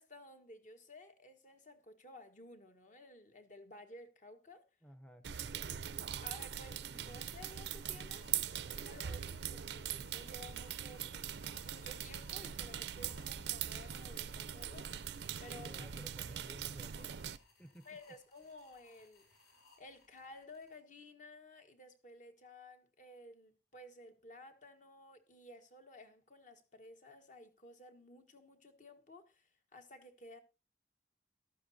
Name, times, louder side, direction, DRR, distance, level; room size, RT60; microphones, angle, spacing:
voice 1, 0.0-4.7 6.2-11.3 11.6-15.9 17.8-19.3 19.8-30.4, left 1 dB, 45° left, 1.5 m, -55 dB
voice 2, 4.8-5.8 15.6-17.3 17.6-17.8, equal, 5° left, 0.7 m, -56 dB
sound 1, 5.2-17.4, right 9 dB, 75° right, 0.5 m, -42 dB
sound 2, 6.0-20.7, left 3 dB, 70° left, 6.8 m, -66 dB
14.0 x 12.0 x 2.7 m
head